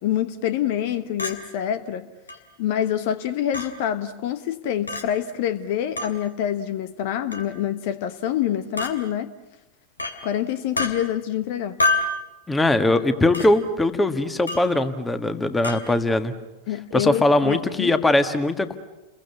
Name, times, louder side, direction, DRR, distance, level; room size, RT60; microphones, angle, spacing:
voice 1, 0.0-2.1 2.6-9.3 10.2-11.8 16.7-18.0, left 10 dB, 55° left, 1.2 m, -26 dB
Chink clink, 1.2-1.4 2.3-2.4 3.5-3.7 4.9-5.0 6.0-6.1 7.3-7.5 8.8-8.9 10.0-10.2 10.8-10.9 11.8-12.2 13.3-13.5 14.5-14.7 15.6-15.8, left 2 dB, 85° left, 2.8 m, -25 dB
voice 2, 12.5-16.3 16.9-18.8, left 2 dB, 10° left, 1.7 m, -21 dB
30.0 x 22.0 x 7.0 m
figure-of-eight pair, 95°, 0 cm